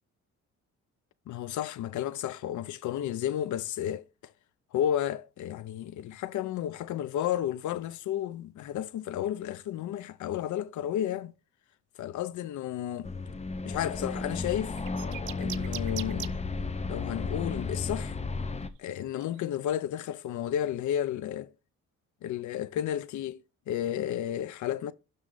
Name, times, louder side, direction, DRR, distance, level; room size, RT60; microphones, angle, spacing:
voice 1, 1.3-4.0 4.7-11.3 12.0-13.1 13.6-14.8 15.4-16.4 16.9-18.2 18.8-21.5 22.2-23.4 23.7-24.9, left 11 dB, 75° left, 0.7 m, -32 dB
sound 1, 13.0-18.7, left 3 dB, 20° left, 0.8 m, -33 dB
sound 2, 14.8-16.3 17.5-17.7 18.4-19.6, right 17 dB, 85° right, 0.6 m, -40 dB
11.5 x 3.9 x 3.9 m
cardioid pair, 90°, 30 cm